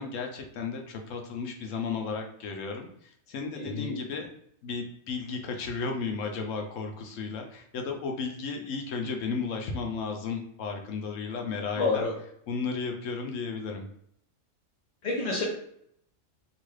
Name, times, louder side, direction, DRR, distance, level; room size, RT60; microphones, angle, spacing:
voice 1, 0.0-4.3 4.6-12.0 12.5-13.9, left 4 dB, 80° left, 3 dB, 1.0 m, -34 dB
voice 2, 3.6-3.9 11.8-12.1 15.0-15.4, left 3 dB, 50° left, -4 dB, 0.5 m, -28 dB
2.9 x 2.2 x 3.1 m, 0.70 s
omnidirectional pair, 1.3 m